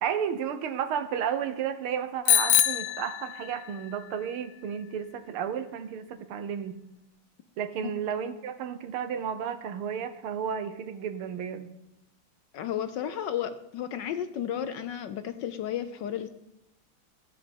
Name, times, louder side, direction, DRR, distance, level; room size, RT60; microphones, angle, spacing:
voice 1, 0.0-6.8 7.6-11.7, right 8 dB, 80° right, 11 dB, 1.8 m, -32 dB
Bicycle bell, 2.3-3.8, left 11 dB, 85° left, 1.5 m, -24 dB
voice 2, 12.5-16.3, left 9 dB, 65° left, 10 dB, 1.2 m, -33 dB
15.0 x 9.0 x 5.3 m, 0.87 s
omnidirectional pair, 2.3 m